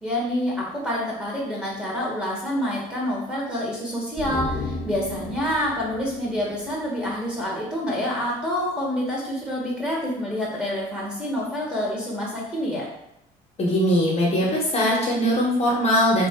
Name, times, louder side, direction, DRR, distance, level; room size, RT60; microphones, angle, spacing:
voice 1, 0.0-12.9, equal, 5° right, -4 dB, 1.2 m, -27 dB
sound 1, 4.2-7.6 7.9-8.0, left 3 dB, 15° left, 0.5 m, -34 dB
voice 2, 13.6-16.3, equal, 40° left, -4 dB, 1.1 m, -21 dB
3.2 x 2.4 x 3.6 m, 0.81 s
supercardioid pair, 95°, 18 cm